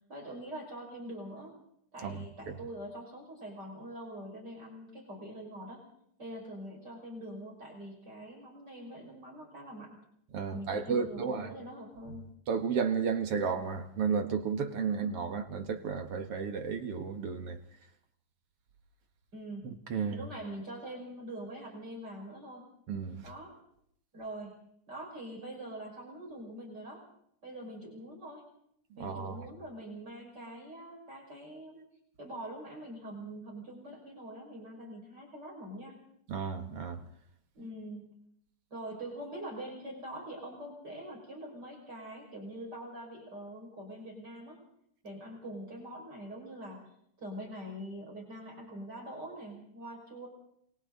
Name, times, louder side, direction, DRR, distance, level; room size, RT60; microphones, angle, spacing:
voice 1, 0.1-1.6 1.9-5.8 6.2-10.0 10.5-12.3 19.3-19.7 20.1-22.6 23.2-23.5 24.1-24.6 24.9-27.0 27.4-28.4 29.0-31.8 32.2-36.0 37.5-38.1 38.7-44.6 45.0-46.8 47.2-50.3, right 1 dB, 30° right, 6.4 m, -44 dB
voice 2, 10.3-11.5 12.5-17.6 19.6-20.2 22.9-23.2 28.9-29.4 36.3-37.0, right 6 dB, 55° right, 2.5 m, -33 dB
28.5 x 23.0 x 4.0 m
omnidirectional pair, 3.5 m